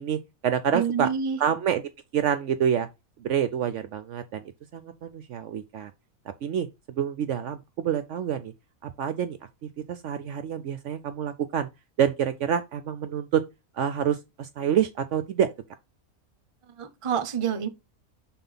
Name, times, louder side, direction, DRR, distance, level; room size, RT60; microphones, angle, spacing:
voice 1, 0.0-1.1 1.4-1.8 2.1-2.9 3.2-4.4 4.7-5.9 6.4-8.5 8.8-9.4 9.9-11.7 12.0-13.4 13.7-15.5, right 8 dB, 65° right, 0.8 m, -27 dB
voice 2, 0.7-1.4 16.8-17.7, right 7 dB, 30° right, 0.7 m, -27 dB
5.9 x 4.3 x 5.4 m
omnidirectional pair, 1.5 m